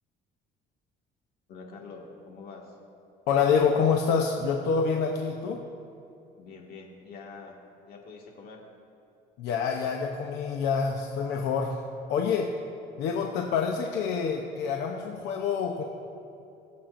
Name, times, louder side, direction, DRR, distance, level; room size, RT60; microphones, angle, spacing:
voice 1, 1.5-2.7 6.4-7.5 7.9-8.6, left 4 dB, 65° left, -1 dB, 1.9 m, -45 dB
voice 2, 3.3-5.6 9.4-11.8 12.1-12.5 13.0-15.8, left 6 dB, 90° left, 1 dB, 0.8 m, -27 dB
21.0 x 7.4 x 2.6 m, 2.7 s
cardioid pair, 110°, 17 cm